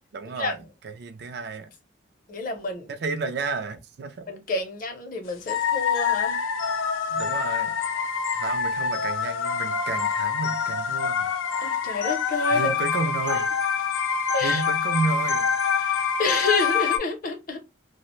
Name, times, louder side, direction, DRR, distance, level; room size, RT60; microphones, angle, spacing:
voice 1, 0.1-0.6 0.8-1.7 2.9-4.3 7.1-7.8 8.3-11.3 12.5-13.5 14.4-15.5, right 4 dB, 55° right, 0.3 m, -31 dB
voice 2, 2.3-2.9 4.3-6.4 11.6-12.8 13.2-13.4 14.3-14.6 15.8-17.6, left 3 dB, 45° left, 0.6 m, -29 dB
sound 1, 5.5-17.0, left 6 dB, 90° left, 0.4 m, -26 dB
2.4 x 2.1 x 2.9 m
head